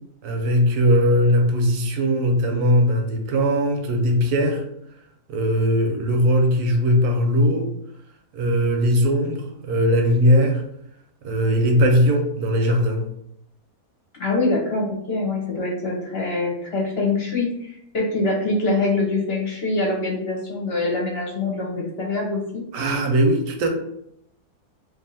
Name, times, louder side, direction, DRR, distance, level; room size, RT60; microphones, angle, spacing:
voice 1, 0.2-4.6 5.3-7.7 8.3-10.6 11.2-13.0 22.7-23.7, equal, 75° right, 3 dB, 1.2 m, -19 dB
voice 2, 14.2-22.6, left 2 dB, 50° left, -2 dB, 0.9 m, -24 dB
2.7 x 2.7 x 4.0 m, 0.74 s
omnidirectional pair, 1.7 m